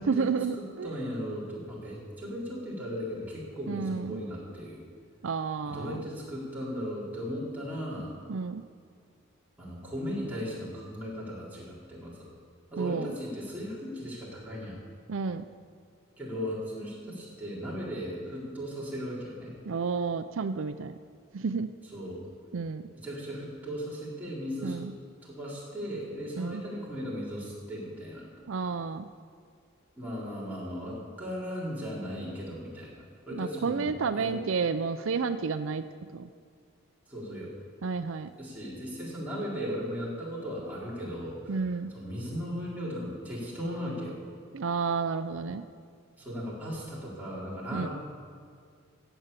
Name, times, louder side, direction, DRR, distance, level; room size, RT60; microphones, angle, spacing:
voice 1, 0.0-0.9 3.7-4.2 5.2-6.0 8.3-8.6 12.8-13.1 15.1-15.5 19.7-21.0 21.3-21.7 22.5-22.9 24.6-24.9 26.4-26.6 28.5-29.1 33.3-35.8 36.1-36.3 37.8-38.3 41.5-41.9 44.5-45.6 47.7-47.9, right 5 dB, 75° right, 11 dB, 0.5 m, -31 dB
voice 2, 0.5-4.8 5.6-8.2 9.6-12.3 12.7-14.8 16.2-19.5 21.9-22.2 22.9-24.8 25.2-28.3 30.0-34.4 37.1-37.5 38.4-41.6 41.9-44.2 46.2-47.9, equal, 10° right, -7 dB, 4.2 m, -37 dB
16.0 x 8.0 x 8.2 m, 2.1 s
head